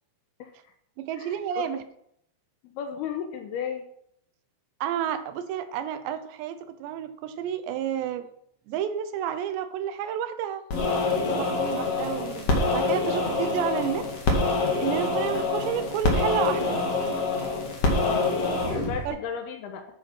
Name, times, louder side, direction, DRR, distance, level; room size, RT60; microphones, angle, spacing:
voice 1, 0.4-0.7 1.1-1.4 1.7-1.8 2.6-3.8 11.3-11.5 14.4-14.5 18.0-18.4 18.7-19.9, left 8 dB, 70° left, 2.7 m, -34 dB
voice 2, 1.0-1.8 4.8-8.3 8.7-10.6 11.2-14.1 14.8-16.8 19.1-19.2, right 9 dB, 80° right, 2.9 m, -30 dB
sound 1, 10.7-19.1, left 3 dB, 40° left, 2.6 m, -26 dB
11.0 x 8.8 x 6.0 m
omnidirectional pair, 5.3 m